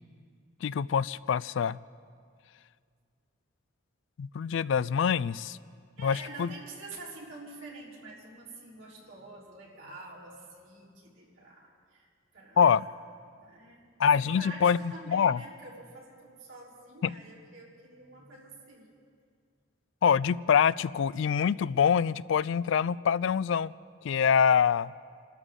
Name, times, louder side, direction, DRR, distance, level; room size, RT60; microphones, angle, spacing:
voice 1, 0.6-1.8 4.2-5.6 6.0-6.5 12.6-12.9 14.0-15.4 17.0-17.1 20.0-23.7 24.0-24.9, left 7 dB, 65° left, 19 dB, 0.3 m, -25 dB
voice 2, 6.0-12.9 13.4-13.9 14.1-18.9, right 2 dB, 75° right, -5 dB, 3.8 m, -47 dB
29.0 x 13.0 x 3.8 m, 2.1 s
head